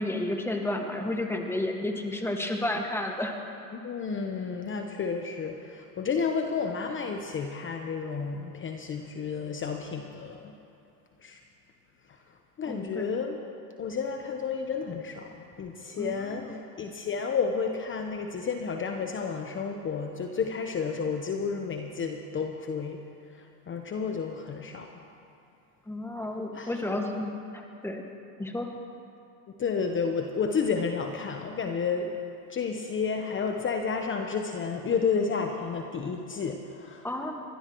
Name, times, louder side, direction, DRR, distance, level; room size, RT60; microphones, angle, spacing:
voice 1, 0.0-3.4 12.6-13.1 16.0-16.7 25.9-28.0 28.4-28.7 37.0-37.3, left 1 dB, 5° left, 2 dB, 1.8 m, -32 dB
voice 2, 3.8-10.5 11.2-11.4 12.6-13.4 13.8-23.0 23.7-25.0 26.5-26.7 29.6-32.1 32.5-37.1, left 5 dB, 25° left, 4 dB, 1.0 m, -31 dB
23.5 x 17.5 x 3.1 m, 2.6 s
hypercardioid pair, 100°, 48 cm